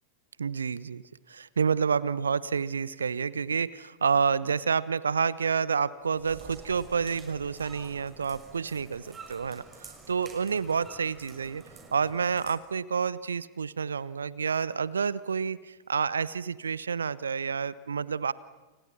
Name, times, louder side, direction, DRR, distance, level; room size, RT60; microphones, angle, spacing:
voice 1, 0.4-1.0 1.3-11.6 11.9-18.3, right 6 dB, 70° right, 20 dB, 0.8 m, -29 dB
sound 1, 6.0-12.6, right 4 dB, 20° right, 5.8 m, -49 dB
29.5 x 29.0 x 5.9 m, 1.2 s
figure-of-eight pair, 90°, 0 cm